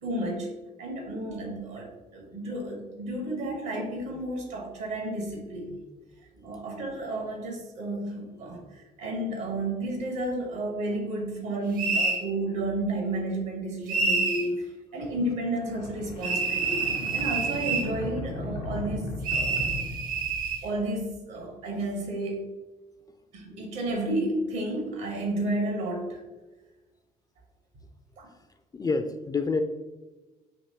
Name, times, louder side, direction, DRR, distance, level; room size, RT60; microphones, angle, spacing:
voice 1, 0.0-0.5 0.8-5.9 6.4-16.8 17.1-19.1 19.3-19.7 20.6-22.4 23.3-26.2 28.2-28.3, right 1 dB, 70° right, 2 dB, 1.1 m, -32 dB
sound 1, 11.8-12.2 13.9-14.5 16.2-17.9 19.2-20.6, right 4 dB, 45° right, 0.7 m, -27 dB
sound 2, 15.0-20.9, left 2 dB, 80° left, 0.5 m, -37 dB
voice 2, 28.7-29.6, left 4 dB, 20° left, 8 dB, 0.3 m, -28 dB
5.8 x 2.8 x 2.7 m, 1.2 s
figure-of-eight pair, 45°, 20 cm